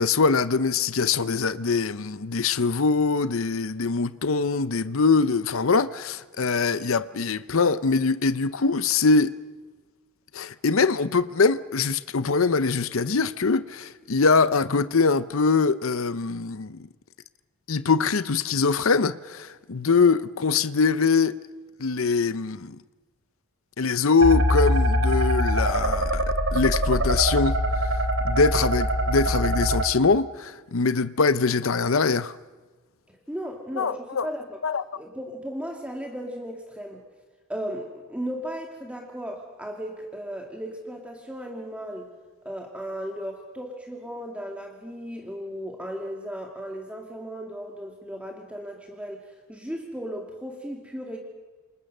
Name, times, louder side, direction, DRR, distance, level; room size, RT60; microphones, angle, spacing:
voice 1, 0.0-9.4 10.3-16.8 17.7-21.4 21.8-22.8 23.8-26.2 26.5-27.6 28.2-32.4 33.8-34.3 34.6-34.8, left 4 dB, 65° left, 0.7 m, -23 dB
sound 1, 24.2-29.8, equal, 65° right, 3.5 m, -23 dB
voice 2, 33.3-34.6 35.0-37.0 37.5-42.1 42.4-51.2, equal, 5° right, 2.4 m, -36 dB
29.0 x 26.0 x 6.7 m
head